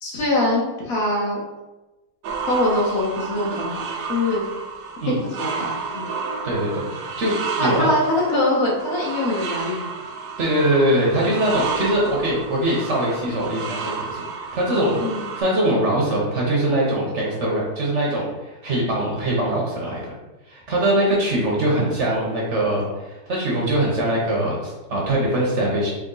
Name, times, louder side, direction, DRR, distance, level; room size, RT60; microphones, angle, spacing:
voice 1, 0.0-1.4 2.5-3.8 4.1-4.5 5.2-6.1 7.6-8.0 8.3-9.9 15.0-15.2, left 1 dB, 65° left, -4 dB, 1.5 m, -23 dB
sound 1, 2.2-15.4, right 5 dB, 85° right, 1.2 m, -31 dB
voice 2, 6.4-6.9 7.1-7.9 10.4-15.0 15.4-20.1 20.5-25.9, right 1 dB, 50° right, -4 dB, 1.1 m, -22 dB
4.1 x 2.9 x 3.9 m, 1.1 s
omnidirectional pair, 1.7 m